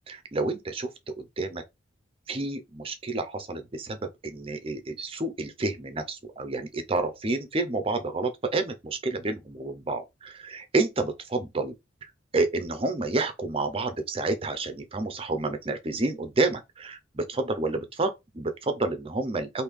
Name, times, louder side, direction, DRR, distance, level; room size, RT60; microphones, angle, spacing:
voice 1, 0.1-0.9 1.4-1.6 2.3-4.0 4.2-11.7 12.3-19.6, right 2 dB, 25° right, 0.5 m, -29 dB
3.2 x 2.6 x 3.5 m
head